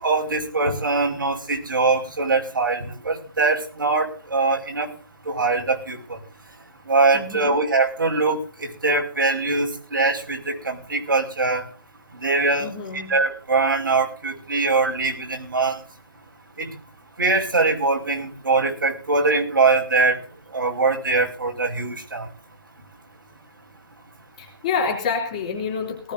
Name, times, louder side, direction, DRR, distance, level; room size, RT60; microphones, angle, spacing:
voice 1, 0.0-4.9 5.3-6.0 6.9-11.6 12.2-12.7 13.1-15.8 16.6-16.7 17.2-20.2 20.5-22.3, right 3 dB, 65° right, 1 dB, 5.5 m, -22 dB
voice 2, 7.1-7.6 12.6-13.2 24.4-26.1, left 5 dB, 20° left, 0 dB, 3.2 m, -28 dB
19.0 x 17.0 x 2.7 m, 0.35 s
hypercardioid pair, 175°, 12 cm